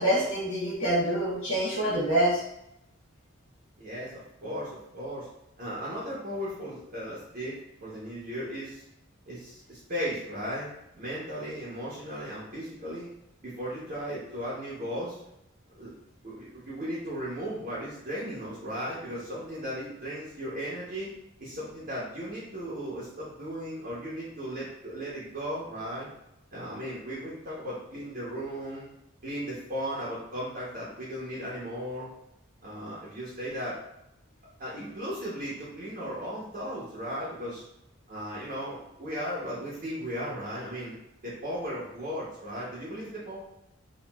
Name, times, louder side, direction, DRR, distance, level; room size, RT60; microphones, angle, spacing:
voice 1, 0.0-2.4, right 1 dB, 75° left, -10 dB, 0.9 m, -26 dB
voice 2, 3.8-4.1 4.4-5.3 5.6-8.8 9.3-10.7 11.0-13.1 13.4-15.2 15.8-15.9 16.2-21.1 21.4-26.1 26.5-28.9 29.2-32.1 32.6-33.8 34.6-37.7 38.1-41.0 41.2-43.4, equal, 40° right, -8 dB, 0.7 m, -36 dB
2.8 x 2.3 x 2.2 m, 0.81 s
head